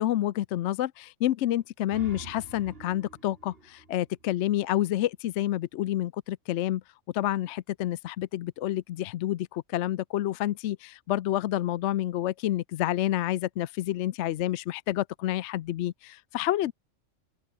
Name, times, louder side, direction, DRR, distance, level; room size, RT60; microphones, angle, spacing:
voice 1, 0.0-6.8 7.1-16.7, left 13 dB, 70° left, 0.8 m, -29 dB
sound 1, 1.6-5.0, right 3 dB, 50° right, 2.7 m, -48 dB
open air
omnidirectional pair, 1.3 m